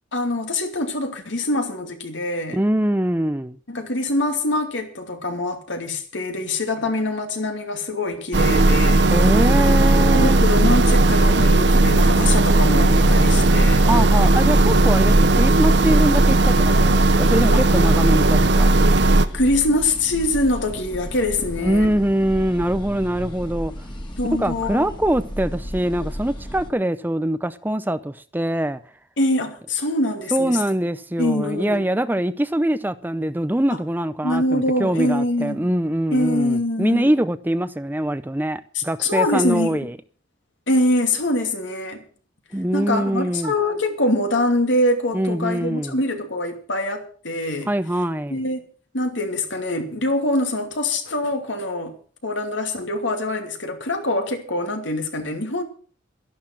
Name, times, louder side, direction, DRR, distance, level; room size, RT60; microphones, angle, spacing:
voice 1, 0.1-2.6 3.7-9.1 10.1-13.8 17.5-17.6 19.3-21.9 24.2-24.9 29.2-30.6 31.2-31.9 33.7-33.8 34.2-35.7 36.1-37.1 38.7-39.8 40.7-42.0 42.7-47.7 48.3-48.6 48.9-51.9 52.2-55.6, left 1 dB, 75° left, 2.7 m, -24 dB
voice 2, 2.5-3.6 9.1-10.4 13.9-18.8 21.6-23.7 24.4-28.8 30.3-39.9 42.5-43.5 45.1-46.0 47.7-48.4, right 1 dB, 10° right, 0.5 m, -23 dB
sound 1, 8.3-19.3, right 2 dB, 65° right, 0.9 m, -16 dB
sound 2, 12.6-26.7, equal, 25° left, 2.3 m, -31 dB
12.5 x 11.5 x 6.1 m
head